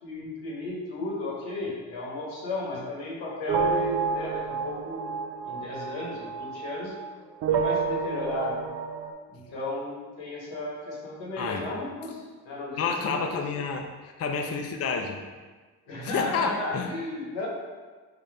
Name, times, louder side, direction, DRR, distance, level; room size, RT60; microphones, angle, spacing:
voice 1, 0.0-5.1 5.4-7.0 7.5-8.6 9.3-13.4 15.9-17.5, left 2 dB, 80° left, -4 dB, 1.1 m, -34 dB
sound 1, 3.5-7.1 7.4-9.1, right 5 dB, 60° right, 0.5 m, -29 dB
voice 2, 12.8-15.2 16.0-16.9, left 5 dB, 35° left, 3 dB, 0.4 m, -29 dB
4.1 x 2.5 x 3.2 m, 1.4 s
hypercardioid pair, 45°, 44 cm